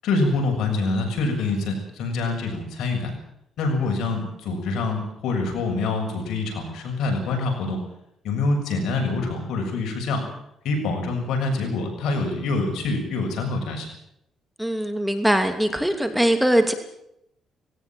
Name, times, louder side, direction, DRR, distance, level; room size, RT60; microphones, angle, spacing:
voice 1, 0.0-3.1 3.6-7.8 8.2-10.2 10.6-13.9, left 3 dB, 80° left, 3 dB, 7.1 m, -25 dB
voice 2, 14.6-16.7, right 1 dB, 5° right, 7 dB, 2.7 m, -21 dB
19.0 x 17.5 x 9.2 m, 0.79 s
cardioid pair, 90°, 0 cm